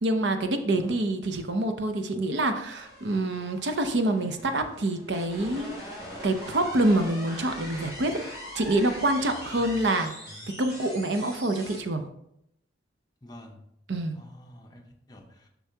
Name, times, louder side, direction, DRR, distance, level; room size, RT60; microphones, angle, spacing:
voice 1, 0.0-5.7 6.2-8.2 8.5-10.1 10.6-12.0 13.9-14.2, right 1 dB, 70° right, 7 dB, 0.7 m, -26 dB
sound 1, 2.6-11.8, equal, 20° right, 2.5 m, -42 dB
voice 2, 4.2-4.7 6.3-6.4 9.5-9.8 13.2-13.6 14.1-15.5, left 1 dB, 20° left, 2 dB, 0.8 m, -48 dB
6.8 x 6.0 x 2.8 m, 0.77 s
head